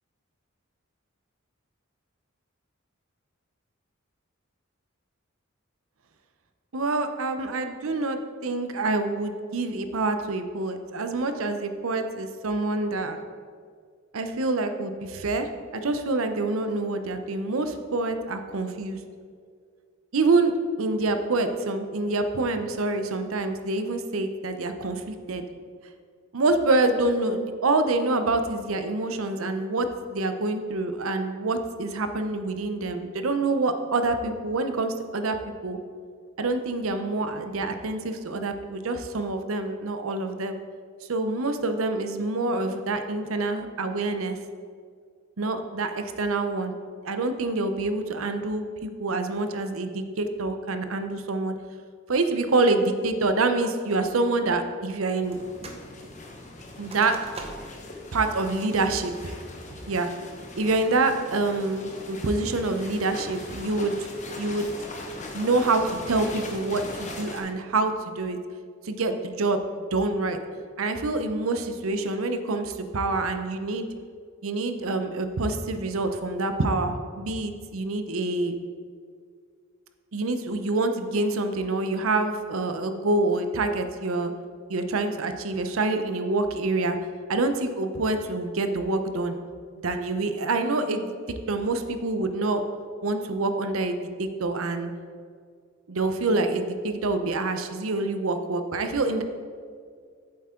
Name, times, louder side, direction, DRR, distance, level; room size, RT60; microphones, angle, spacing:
voice 1, 6.7-13.2 14.1-19.0 20.1-20.5 20.8-25.4 26.3-35.4 35.6-35.8 36.4-40.6 41.1-44.4 45.4-46.7 47.0-51.6 52.1-55.4 56.8-57.2 58.1-59.4 59.9-60.1 60.6-64.1 64.4-64.7 65.3-68.4 68.8-69.6 69.9-70.4 70.8-73.9 74.4-78.5 80.1-84.3 84.7-87.0 87.3-89.3 89.8-92.6 93.0-94.9 95.9-99.2, right 2 dB, 80° right, 8 dB, 0.7 m, -26 dB
sound 1, 55.2-67.4, left 2 dB, 35° left, 1.0 m, -40 dB
sound 2, 55.3-55.9 56.2-57.9 58.3-58.4 58.9-59.3 59.8-60.2, right 2 dB, 30° right, 0.8 m, -43 dB
8.7 x 7.4 x 3.7 m, 2.1 s
head